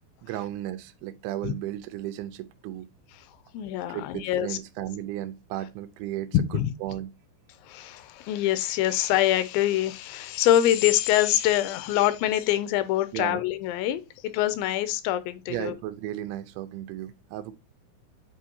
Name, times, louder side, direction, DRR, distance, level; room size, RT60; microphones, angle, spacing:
voice 1, 0.2-2.9 3.9-7.1 13.1-13.4 15.5-17.5, right 13 dB, 85° right, 2.9 m, -35 dB
voice 2, 3.5-4.6 6.5-6.7 7.6-15.7, left 13 dB, 85° left, 2.7 m, -25 dB
8.6 x 4.6 x 2.7 m
omnidirectional pair, 5.4 m